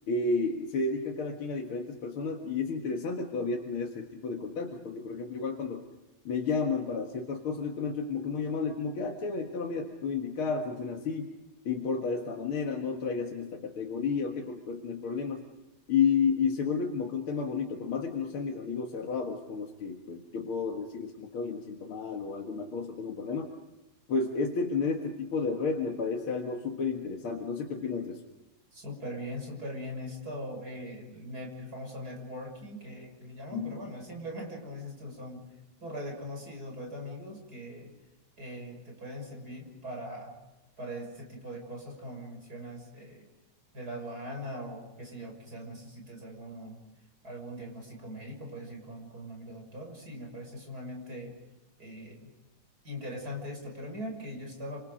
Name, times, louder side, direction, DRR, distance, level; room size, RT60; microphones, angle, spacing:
voice 1, 0.1-5.8 6.3-11.3 11.7-15.4 15.9-23.5 24.1-28.2 33.5-33.7, left 5 dB, 50° left, 1 dB, 2.3 m, -31 dB
voice 2, 28.7-35.4 35.8-37.9 38.4-40.3 40.8-43.3 43.7-46.8 47.2-51.3 51.8-52.3 52.8-54.8, equal, 30° right, 1 dB, 6.6 m, -41 dB
28.0 x 27.0 x 5.2 m, 1.0 s
omnidirectional pair, 3.4 m